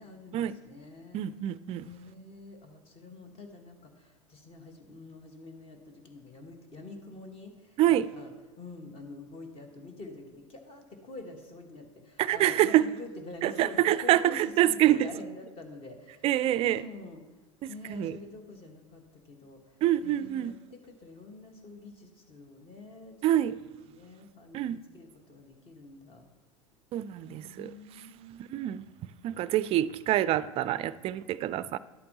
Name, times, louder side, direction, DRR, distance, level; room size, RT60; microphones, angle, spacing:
voice 1, 0.0-1.2 1.8-8.3 8.6-17.2 17.7-23.2 23.8-26.3 27.2-28.4, left 2 dB, 35° left, 4 dB, 1.6 m, -47 dB
voice 2, 1.1-1.9 7.8-8.0 12.2-12.9 13.4-15.1 16.2-16.8 17.6-18.1 19.8-20.5 23.2-23.5 24.5-24.8 26.9-27.7 28.4-28.9 29.2-31.8, right 13 dB, 35° right, 17 dB, 0.4 m, -26 dB
11.5 x 8.4 x 2.9 m, 1.2 s
hypercardioid pair, 85°, 17 cm